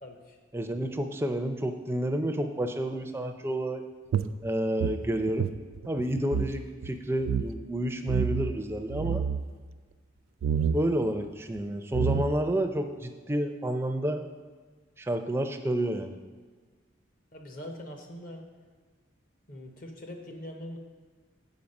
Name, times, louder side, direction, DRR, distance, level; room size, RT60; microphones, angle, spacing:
voice 1, 0.0-0.4 17.3-18.5 19.5-20.8, left 1 dB, 45° left, 4 dB, 0.8 m, -42 dB
voice 2, 0.5-3.9 4.4-5.5 5.9-9.2 10.7-14.2 15.0-16.2, right 1 dB, 10° right, 6 dB, 0.4 m, -30 dB
sound 1, 4.1-6.6 6.8-6.9 7.2-7.5 8.1-8.5 8.9-9.4 10.4-10.8 11.6-11.7 11.9-12.5, right 7 dB, 90° right, 0.3 m, -28 dB
7.1 x 5.3 x 5.3 m, 1.4 s
head